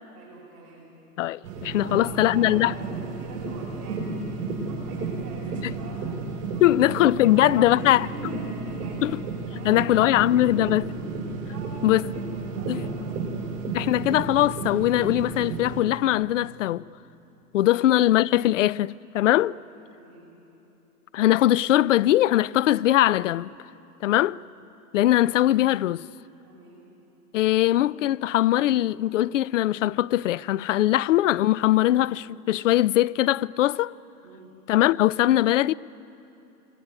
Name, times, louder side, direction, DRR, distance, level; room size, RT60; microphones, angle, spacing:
voice 1, 0.1-0.9 1.7-6.0 6.5-9.1 9.5-11.1 11.5-13.2 17.6-17.9 19.6-20.3 24.0-24.3 26.4-26.8 34.2-34.5, right 3 dB, 30° right, 7.7 m, -45 dB
voice 2, 1.2-2.7 6.6-8.1 9.0-9.1 9.6-10.9 11.8-12.1 12.7-12.8 13.7-16.9 17.5-19.6 21.1-23.5 24.0-24.4 24.9-26.1 27.3-33.9 34.7-35.7, left 14 dB, 55° left, 0.5 m, -21 dB
sound 1, 1.4-15.8, right 3 dB, 50° right, 7.0 m, -32 dB
27.5 x 21.5 x 9.9 m
hypercardioid pair, 150°, 46 cm